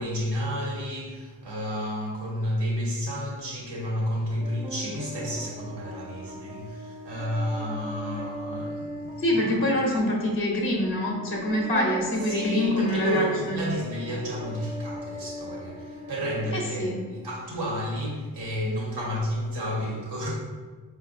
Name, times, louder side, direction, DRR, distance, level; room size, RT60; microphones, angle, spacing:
voice 1, 0.0-9.7 12.3-20.3, equal, 65° right, -3 dB, 1.3 m, -31 dB
sound 1, 4.4-17.4, equal, 15° right, 0.5 m, -39 dB
voice 2, 9.2-13.7 16.5-17.0, left 1 dB, 30° left, -1 dB, 0.8 m, -25 dB
4.6 x 2.6 x 2.5 m, 1.4 s
supercardioid pair, 50°, 43 cm